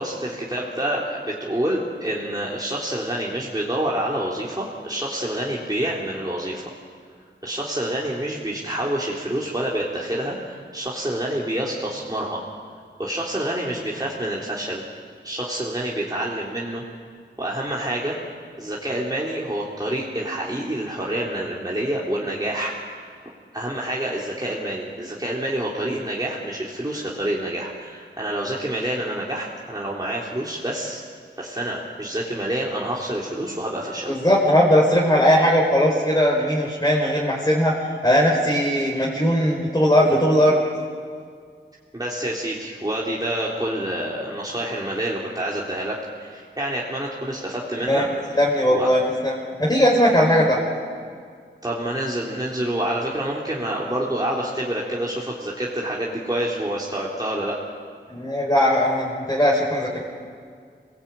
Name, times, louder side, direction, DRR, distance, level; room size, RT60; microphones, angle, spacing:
voice 1, 0.0-6.6 7.4-12.4 13.0-14.8 15.2-16.8 17.4-18.2 18.6-23.0 23.5-31.0 31.4-34.1 41.9-48.3 48.7-48.9 51.6-57.6, right 1 dB, 20° right, -5 dB, 3.5 m, -27 dB
voice 2, 34.1-37.7 38.0-40.6 47.9-48.1 48.3-50.6 58.1-60.0, equal, 20° left, -4 dB, 4.9 m, -19 dB
27.0 x 19.0 x 9.0 m, 2.1 s
wide cardioid pair, 65°, 19 cm